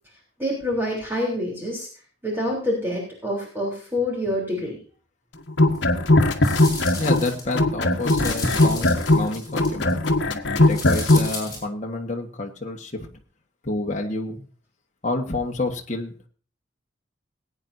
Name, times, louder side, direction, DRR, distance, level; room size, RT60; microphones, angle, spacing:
voice 1, 0.4-1.9 2.2-4.8, left 1 dB, 10° right, -3 dB, 3.5 m, -26 dB
sound 1, 5.5-7.3 7.5-11.3, left 2 dB, 60° left, 1.3 m, -19 dB
sound 2, 5.7-5.8 6.4-7.5 7.9-10.1 10.6-11.6, left 3 dB, 20° left, 6.0 m, -35 dB
voice 2, 6.9-13.1 13.6-14.4 15.0-16.1, left 2 dB, 35° left, 1 dB, 1.4 m, -29 dB
20.0 x 9.2 x 2.7 m, 0.40 s
head